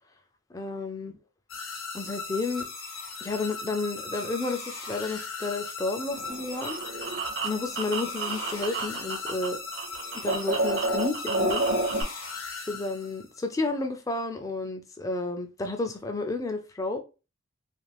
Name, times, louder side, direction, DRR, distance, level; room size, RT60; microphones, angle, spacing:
voice 1, 0.5-1.1 1.9-2.7 3.2-6.8 7.4-9.6 10.2-11.7 12.7-17.0, left 3 dB, 15° left, 0.3 m, -31 dB
sound 1, 1.5-13.4, left 4 dB, 65° left, 0.7 m, -38 dB
sound 2, 6.1-9.5 9.7-12.0, right 2 dB, 55° right, 0.6 m, -29 dB
2.5 x 2.3 x 3.3 m
head